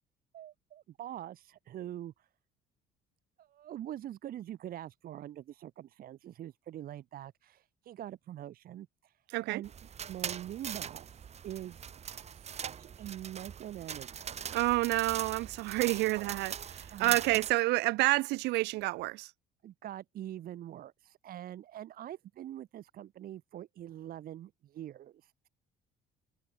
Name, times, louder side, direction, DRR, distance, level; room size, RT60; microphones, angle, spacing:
voice 1, 0.3-2.3 3.4-9.7 10.1-11.1 11.4-11.8 12.3-14.4 16.1-17.5 19.6-25.5, right 12 dB, 60° right, 1.7 m, -44 dB
sound 1, 9.6-17.5, right 7 dB, 40° right, 1.7 m, -41 dB
voice 2, 14.5-16.5 17.0-19.3, right 20 dB, 90° right, 1.1 m, -29 dB
cardioid pair, 110°, 17 cm